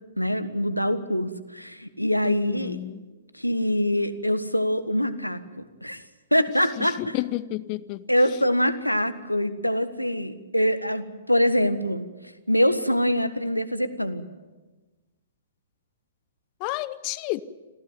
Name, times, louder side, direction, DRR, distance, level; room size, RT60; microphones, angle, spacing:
voice 1, 0.2-2.8 3.3-6.0 6.3-7.1 8.1-14.3, equal, 90° left, 1.4 m, -24 dB
voice 2, 2.2-3.0 6.8-8.0 16.6-17.4, left 18 dB, 30° left, 0.8 m, -31 dB
26.0 x 15.5 x 9.3 m
figure-of-eight pair, 115°, 0 cm